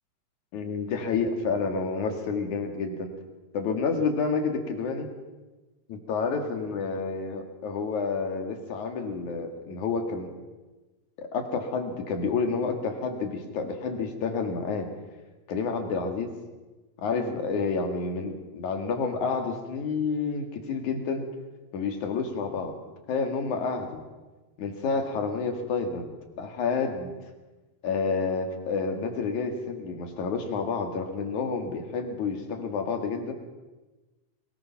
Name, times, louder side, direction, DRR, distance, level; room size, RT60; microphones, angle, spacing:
voice 1, 0.5-3.1 3.5-5.1 5.9-10.3 11.2-14.9 15.5-16.4 17.0-21.3 21.7-22.7 23.1-24.0 24.6-27.1 27.8-33.3, left 4 dB, 85° left, 5 dB, 3.6 m, -29 dB
22.0 x 20.0 x 5.9 m, 1.2 s
omnidirectional pair, 3.3 m